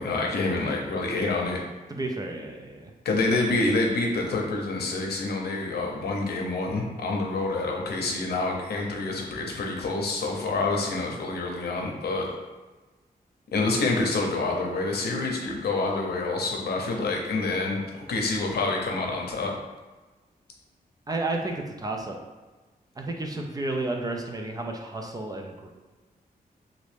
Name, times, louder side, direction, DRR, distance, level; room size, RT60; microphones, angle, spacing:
voice 1, 0.0-1.6 3.0-12.3 13.5-19.6, left 3 dB, 90° left, 0 dB, 0.6 m, -27 dB
voice 2, 1.9-2.9 21.1-22.2 23.0-25.7, right 2 dB, 25° right, 2 dB, 0.4 m, -32 dB
3.0 x 2.6 x 3.3 m, 1.2 s
wide cardioid pair, 145°, 16 cm